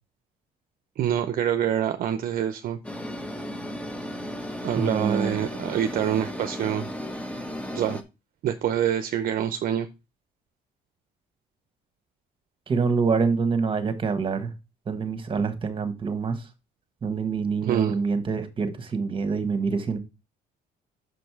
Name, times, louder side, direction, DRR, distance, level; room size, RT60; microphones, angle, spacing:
voice 1, 1.0-2.8 4.6-6.9 7.7-8.0 8.4-9.9 17.6-18.0, right 10 dB, 55° right, 0.6 m, -26 dB
sound 1, 2.8-8.0, equal, 5° left, 1.0 m, -35 dB
voice 2, 4.7-5.4 12.7-14.5 14.9-16.5 17.0-20.0, right 5 dB, 30° right, 1.4 m, -26 dB
6.4 x 5.2 x 4.6 m
cardioid pair, 110°, 17 cm